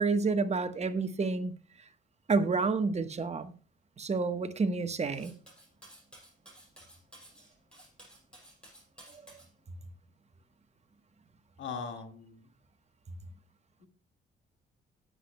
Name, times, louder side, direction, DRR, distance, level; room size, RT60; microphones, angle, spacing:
voice 1, 0.0-1.5 2.3-3.5 4.0-5.3 9.1-9.2, right 4 dB, 35° right, 1.1 m, -29 dB
Cutlery silverware, 5.1-9.5, right 1 dB, 5° left, 6.6 m, -55 dB
voice 2, 11.6-12.5 13.8-13.9, left 5 dB, 70° left, 1.9 m, -40 dB
18.0 x 7.9 x 2.2 m
cardioid pair, 90°, 20 cm